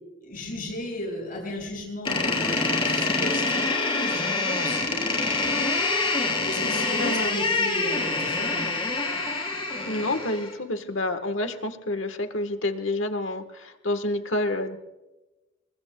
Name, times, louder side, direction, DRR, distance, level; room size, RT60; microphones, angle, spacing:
voice 1, 0.2-5.3 6.4-8.7, left 1 dB, 45° left, 1 dB, 6.5 m, -35 dB
Door, 2.0-10.5, left 3 dB, 25° left, 3.8 m, -26 dB
voice 2, 7.0-7.4 9.8-14.8, left 1 dB, 80° left, 8 dB, 1.3 m, -28 dB
26.5 x 22.0 x 2.2 m, 1.1 s
head